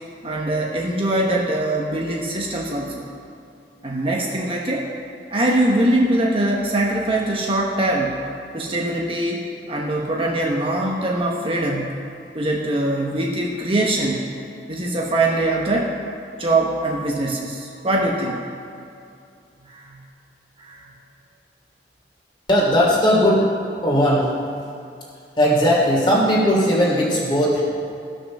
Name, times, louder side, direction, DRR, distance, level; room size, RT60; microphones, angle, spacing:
voice 1, 0.2-3.1 3.8-4.9 5.3-8.2 8.5-9.4 9.7-11.9 12.3-14.2 14.7-15.9 16.4-18.4 19.6-20.0 20.6-20.9, right 1 dB, 30° right, -2 dB, 1.0 m, -22 dB
voice 2, 22.5-23.5 23.8-24.3 25.4-27.6, equal, 25° left, -5 dB, 2.9 m, -17 dB
15.0 x 6.4 x 6.2 m, 2.5 s
head